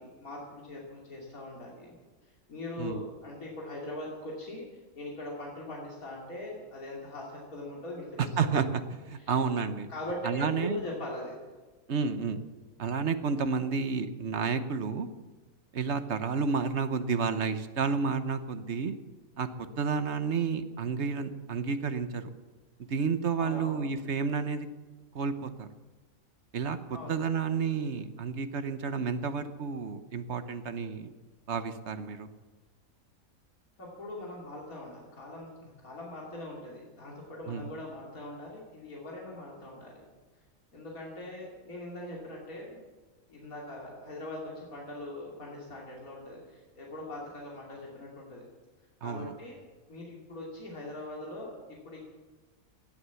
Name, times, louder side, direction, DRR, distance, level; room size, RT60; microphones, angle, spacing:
voice 1, 0.0-1.9 2.2-8.2 9.2-9.3 9.9-11.3 23.4-23.8 26.9-27.3 33.8-40.0 40.7-42.8 43.3-48.4 49.0-49.6 49.9-51.6 51.9-52.0, left 1 dB, 75° left, -3 dB, 3.4 m, -41 dB
voice 2, 8.2-9.9 10.2-10.8 11.9-12.4 12.8-15.1 15.7-19.0 19.4-19.5 19.8-22.3 22.9-24.7 25.1-25.7 26.5-31.1 31.5-32.3 37.5-37.6 49.0-49.3, right 5 dB, 55° right, 10 dB, 1.2 m, -31 dB
17.5 x 11.5 x 7.1 m, 1.2 s
omnidirectional pair, 1.5 m